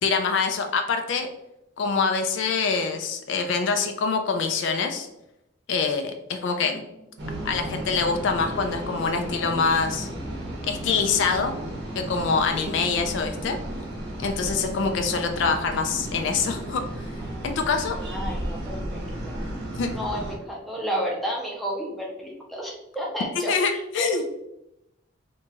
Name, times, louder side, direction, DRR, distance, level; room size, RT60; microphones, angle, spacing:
voice 1, 0.0-1.3 1.8-5.1 5.7-6.8 7.4-10.1 10.6-11.6 12.0-13.6 14.2-16.8 17.4-18.0 19.7-19.9 23.5-24.2, left 5 dB, 60° left, 6 dB, 0.3 m, -25 dB
sound 1, 7.2-20.4, right 1 dB, 50° right, 0.7 m, -34 dB
voice 2, 17.9-19.4 19.9-24.3, equal, ahead, -3 dB, 0.5 m, -32 dB
2.9 x 2.2 x 2.8 m, 0.84 s
head